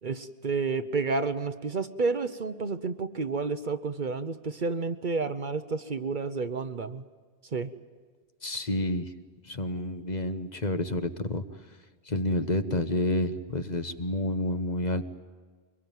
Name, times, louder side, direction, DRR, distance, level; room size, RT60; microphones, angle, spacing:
voice 1, 0.0-7.0 7.5-7.7, right 4 dB, 50° right, 11 dB, 1.0 m, -30 dB
voice 2, 8.4-9.1 9.4-11.4 12.1-15.0, left 1 dB, 40° left, 9 dB, 1.3 m, -29 dB
25.0 x 22.0 x 9.2 m, 1.5 s
omnidirectional pair, 1.1 m